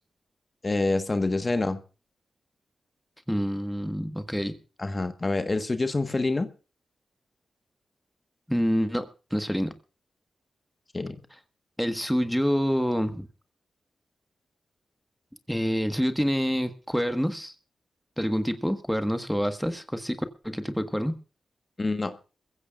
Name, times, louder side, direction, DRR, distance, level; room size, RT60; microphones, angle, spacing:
voice 1, 0.6-1.8 4.8-6.5 10.9-11.1 21.8-22.1, left 2 dB, 35° left, 1.4 m, -26 dB
voice 2, 3.3-4.6 8.5-9.7 11.8-13.3 15.5-17.5 18.2-21.2, equal, ahead, 1.5 m, -27 dB
21.5 x 15.5 x 2.5 m
cardioid pair, 50°, 0 cm